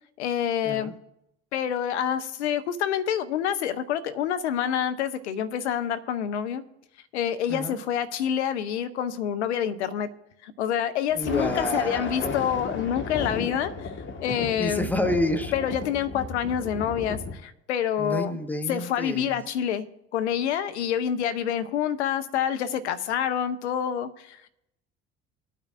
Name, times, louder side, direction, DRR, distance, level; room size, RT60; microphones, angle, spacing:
voice 1, 0.2-0.9 1.5-6.6 7.1-10.1 10.4-13.9 14.2-14.9 15.5-18.4 18.7-19.9 20.1-24.5, left 9 dB, 85° left, 11 dB, 0.7 m, -27 dB
Thunder, 11.1-17.4, left 4 dB, 35° left, 1.5 m, -34 dB
voice 2, 11.1-12.4 14.6-15.5 18.0-19.4, left 1 dB, 5° left, 7 dB, 1.2 m, -29 dB
19.5 x 9.1 x 2.5 m, 0.82 s
hypercardioid pair, 60°, 33 cm